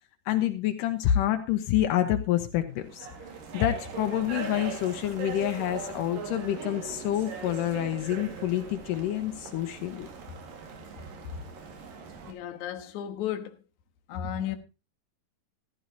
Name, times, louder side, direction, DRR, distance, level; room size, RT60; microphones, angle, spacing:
voice 1, 0.3-3.1 3.5-10.1, left 12 dB, 85° left, 2.5 m, -27 dB
sound 1, 2.8-12.3, right 6 dB, 90° right, 3.7 m, -40 dB
voice 2, 12.3-13.6 14.1-14.6, left 10 dB, 65° left, 2.5 m, -34 dB
14.5 x 12.5 x 2.8 m
omnidirectional pair, 3.8 m